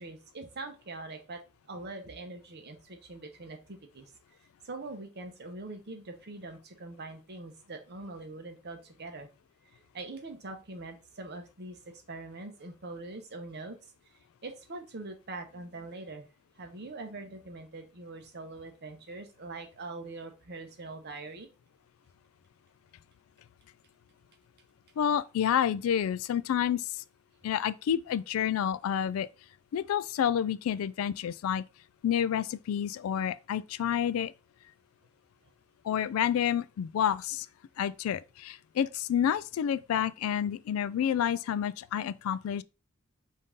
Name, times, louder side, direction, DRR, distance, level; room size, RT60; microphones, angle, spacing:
voice 1, 0.0-4.1 4.6-9.3 9.7-13.9 14.4-16.3 16.6-21.5, right 2 dB, 50° right, 0.9 m, -43 dB
voice 2, 25.0-27.0 27.4-29.3 29.7-31.6 32.0-34.3 35.8-37.5 37.8-42.6, left 9 dB, 75° left, 0.3 m, -29 dB
5.2 x 2.7 x 3.7 m
head